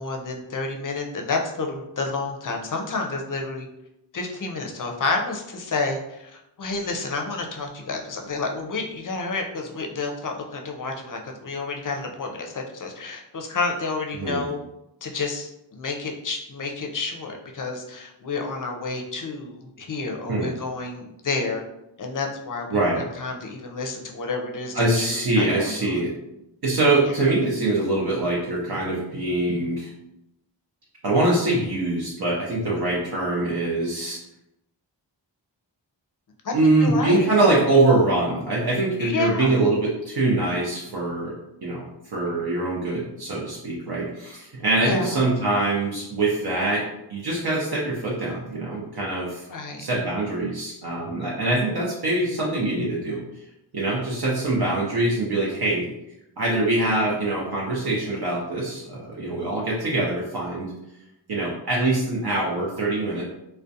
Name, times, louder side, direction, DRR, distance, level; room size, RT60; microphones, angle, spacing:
voice 1, 0.0-3.7 4.1-14.6 15.0-21.6 22.0-26.0 27.1-27.2 34.0-34.1 36.4-37.3 39.0-39.6 44.8-45.2 49.5-49.9, left 3 dB, 45° left, 2 dB, 0.5 m, -30 dB
voice 2, 22.7-23.0 24.7-26.1 26.6-29.9 31.0-34.2 36.5-41.3 41.6-41.8 42.1-46.8 47.1-49.5 49.8-53.2 53.7-55.9 56.4-60.7 61.3-63.2, right 2 dB, 60° right, -5 dB, 0.6 m, -23 dB
2.4 x 2.1 x 2.6 m, 0.87 s
wide cardioid pair, 50°, 44 cm